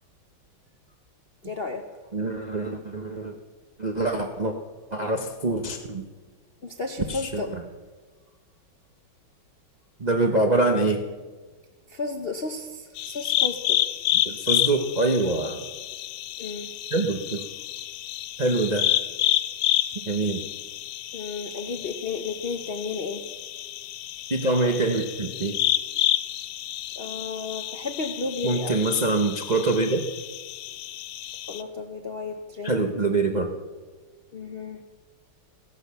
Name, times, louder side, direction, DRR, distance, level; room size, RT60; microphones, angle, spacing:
voice 1, 1.4-1.9 3.9-4.2 6.6-7.5 11.9-13.8 16.4-16.7 21.1-23.3 27.0-28.9 31.3-32.8 34.3-34.8, left 4 dB, 55° left, 5 dB, 0.6 m, -33 dB
voice 2, 2.1-3.3 3.8-4.5 4.9-6.0 7.1-7.4 10.0-11.0 14.2-15.6 16.9-17.4 18.4-18.9 20.1-20.4 24.3-25.6 28.4-30.0 32.6-33.5, right 2 dB, 45° right, 3 dB, 0.5 m, -24 dB
sound 1, 13.0-31.6, left 13 dB, 80° left, 1.4 m, -29 dB
15.5 x 11.0 x 6.9 m, 1.4 s
omnidirectional pair, 2.3 m